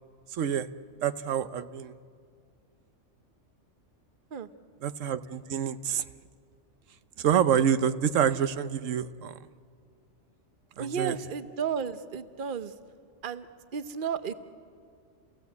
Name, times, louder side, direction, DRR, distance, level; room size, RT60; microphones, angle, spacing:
voice 1, 0.3-0.7 1.0-2.0 4.8-6.0 7.2-9.4 10.8-11.2, right 8 dB, 90° right, 12 dB, 1.1 m, -27 dB
voice 2, 10.8-12.7 13.2-13.5 13.7-14.3, right 7 dB, 45° right, 11 dB, 1.0 m, -33 dB
29.5 x 16.5 x 8.2 m, 2.2 s
omnidirectional pair, 1.3 m